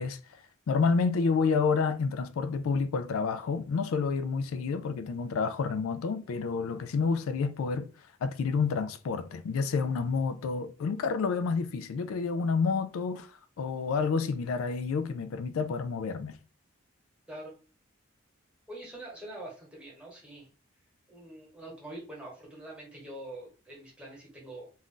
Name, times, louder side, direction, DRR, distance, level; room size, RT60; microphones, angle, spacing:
voice 1, 0.0-7.9 8.2-16.4, left 5 dB, 85° left, 0.3 m, -29 dB
voice 2, 18.7-20.5 21.1-24.7, right 1 dB, 5° right, 1.1 m, -44 dB
2.5 x 2.3 x 3.7 m
head